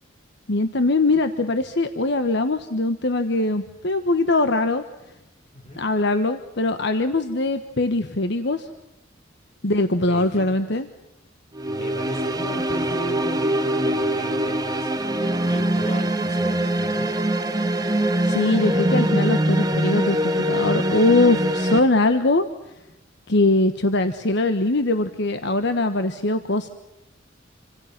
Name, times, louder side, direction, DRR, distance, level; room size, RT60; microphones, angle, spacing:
voice 1, 0.5-4.8 5.8-8.7 9.6-10.8 18.2-22.4 23.3-26.7, left 2 dB, 60° left, 9 dB, 1.2 m, -21 dB
voice 2, 5.5-5.9 10.1-10.8 11.7-14.9 15.3-17.1, right 1 dB, 35° left, 4 dB, 4.8 m, -37 dB
sound 1, 11.5-21.8, right 1 dB, 20° right, 1.5 m, -23 dB
27.5 x 26.0 x 6.0 m, 0.90 s
head